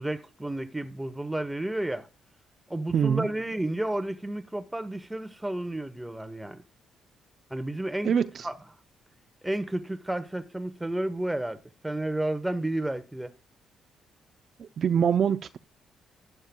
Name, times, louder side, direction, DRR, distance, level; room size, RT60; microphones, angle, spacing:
voice 1, 0.0-2.1 2.7-6.6 7.5-8.1 8.4-8.6 9.4-13.3, right 1 dB, 10° right, 0.9 m, -31 dB
voice 2, 2.9-3.3 8.0-8.5 14.6-15.6, right 7 dB, 55° right, 0.5 m, -24 dB
13.0 x 9.3 x 2.2 m
cardioid pair, 90°, 0 cm